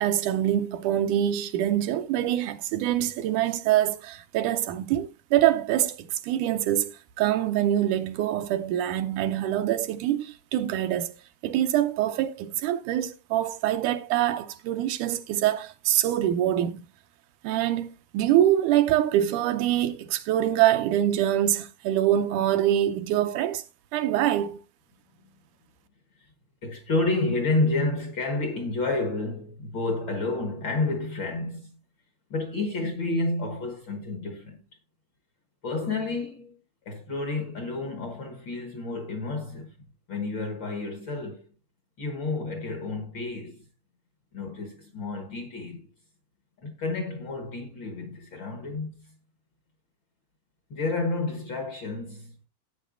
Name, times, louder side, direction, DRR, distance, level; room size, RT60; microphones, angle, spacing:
voice 1, 0.0-11.2 11.4-16.8 17.4-23.6 23.9-24.6, right 12 dB, 80° right, 2.2 m, -25 dB
voice 2, 26.6-31.8 32.3-34.6 35.6-36.5 36.8-39.7 40.1-41.5 42.0-43.7 44.3-45.9 46.6-49.1 50.7-52.3, left 2 dB, 50° left, 1.5 m, -30 dB
15.5 x 8.6 x 2.5 m
omnidirectional pair, 3.7 m